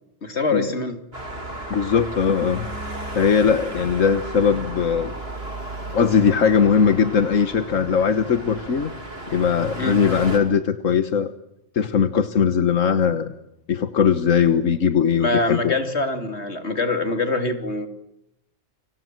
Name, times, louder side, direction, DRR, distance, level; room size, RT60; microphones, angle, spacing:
voice 1, 0.2-1.0 9.8-10.0 15.2-17.9, left 2 dB, 60° left, 8 dB, 3.4 m, -24 dB
Traffic noise roadway noise, 1.1-10.4, right 1 dB, 50° right, 6.5 m, -34 dB
voice 2, 1.7-2.7 3.1-5.1 5.9-8.9 9.3-11.3 11.7-13.3 13.7-15.7, left 6 dB, 85° left, 11 dB, 1.6 m, -20 dB
30.0 x 26.0 x 7.7 m, 0.80 s
omnidirectional pair, 1.3 m